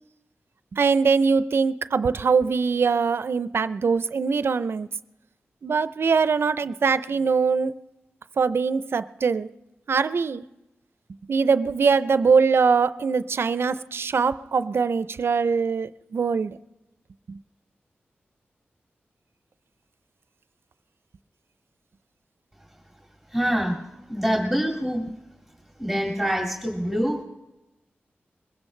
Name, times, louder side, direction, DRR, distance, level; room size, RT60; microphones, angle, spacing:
voice 1, 0.7-4.9 5.6-7.7 8.4-9.5 9.9-10.4 11.3-16.6 17.3-17.4, right 5 dB, 70° right, 0.5 m, -22 dB
voice 2, 23.3-23.8 24.1-25.1 25.8-27.2, equal, ahead, 2.2 m, -25 dB
22.0 x 16.0 x 3.2 m
cardioid pair, 65°, 4 cm